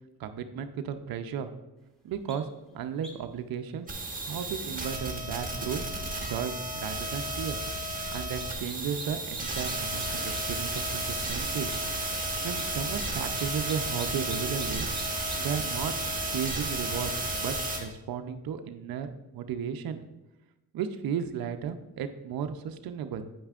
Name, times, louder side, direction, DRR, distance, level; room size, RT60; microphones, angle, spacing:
voice 1, 0.2-1.5 2.0-2.5 2.7-3.9 4.2-5.8 6.2-7.6 8.1-11.7 12.4-14.9 15.4-16.0 16.2-20.0 20.7-23.3, right 7 dB, 60° right, 8 dB, 0.6 m, -34 dB
sound 1, 2.3-2.4 3.0-3.3 8.1-9.1 9.3-10.4 10.7-10.8 11.2-11.3 11.7-11.8 12.4-12.7 13.4-14.7 14.9-15.4, equal, ahead, 1.6 m, -45 dB
sound 2, 3.9-17.8, right 2 dB, 20° right, 1.4 m, -33 dB
8.7 x 5.4 x 2.4 m, 0.97 s
supercardioid pair, 65°, 40 cm